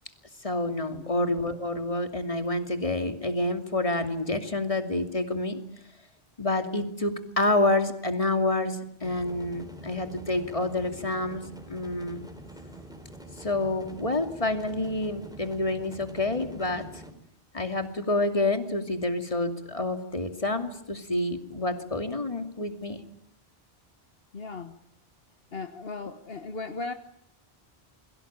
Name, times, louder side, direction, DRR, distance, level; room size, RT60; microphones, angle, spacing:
voice 1, 0.4-5.6 6.4-12.3 13.4-17.0 17.5-23.0, left 2 dB, 30° left, 7 dB, 2.8 m, -28 dB
sound 1, 9.0-17.1, right 1 dB, 5° right, 4.3 m, -46 dB
voice 2, 24.3-24.7 25.5-26.9, left 3 dB, 65° left, 8 dB, 1.6 m, -37 dB
28.5 x 23.0 x 8.9 m, 0.71 s
omnidirectional pair, 1.1 m